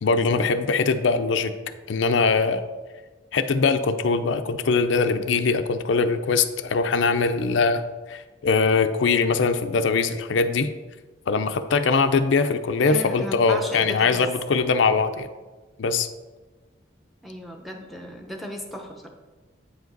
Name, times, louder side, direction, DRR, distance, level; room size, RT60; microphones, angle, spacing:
voice 1, 0.0-1.5 1.9-2.6 3.3-7.8 8.1-10.7 11.3-15.3 15.8-16.1, left 4 dB, 90° left, 9 dB, 0.5 m, -22 dB
voice 2, 12.8-14.3 17.2-19.1, equal, ahead, 2 dB, 0.7 m, -35 dB
8.4 x 5.1 x 3.9 m, 1.3 s
head